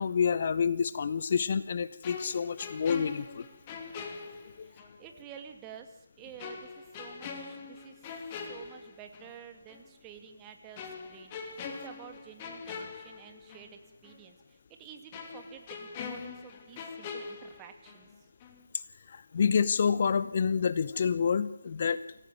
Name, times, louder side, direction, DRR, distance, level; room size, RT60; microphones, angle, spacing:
voice 1, 0.0-3.4 4.6-4.7 19.1-22.0, left 6 dB, 40° left, 16 dB, 0.8 m, -28 dB
sound 1, 2.0-5.0 5.3-5.4 6.4-9.4 9.7-9.9 10.8-13.8 14.0-14.2 15.1-18.1 18.4-18.6, left 5 dB, 20° left, 2.8 m, -43 dB
voice 2, 4.6-8.1 8.5-11.3 11.8-18.1, right 8 dB, 15° right, 6 dB, 2.2 m, -50 dB
25.5 x 16.5 x 9.2 m, 0.92 s
figure-of-eight pair, 155°, 0 cm